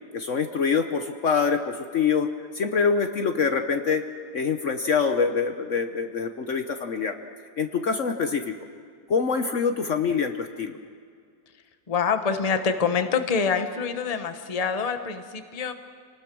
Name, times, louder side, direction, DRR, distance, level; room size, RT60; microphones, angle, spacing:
voice 1, 0.1-2.3 2.5-4.0 4.3-7.1 7.6-8.5 9.1-10.8, left 5 dB, 55° left, 7 dB, 1.2 m, -25 dB
voice 2, 11.9-15.7, left 5 dB, 25° left, 8 dB, 1.0 m, -26 dB
28.0 x 19.0 x 6.2 m, 2.2 s
omnidirectional pair, 1.7 m